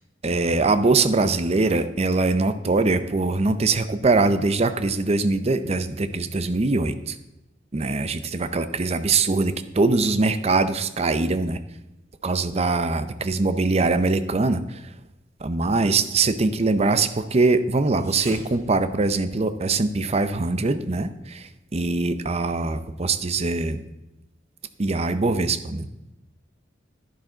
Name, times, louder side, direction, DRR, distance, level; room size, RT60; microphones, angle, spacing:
voice 1, 0.2-7.2 7.7-11.6 12.2-14.8 15.4-23.8 24.8-25.9, right 3 dB, 35° right, 11 dB, 0.6 m, -22 dB
sound 1, 17.8-19.7, right 1 dB, 15° right, 1.8 m, -42 dB
11.0 x 10.5 x 3.9 m, 0.97 s
head